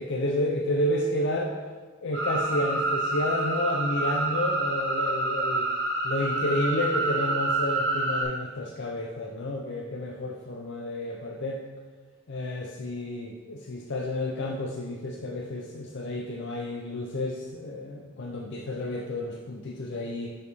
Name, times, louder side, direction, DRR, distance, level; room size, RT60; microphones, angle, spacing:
voice 1, 0.0-1.5 2.0-5.7 6.0-11.6 12.3-20.4, left 1 dB, 55° left, 0 dB, 0.6 m, -30 dB
sound 1, 2.1-8.2, right 2 dB, 30° left, 2.4 m, -28 dB
6.3 x 5.4 x 5.3 m, 1.4 s
head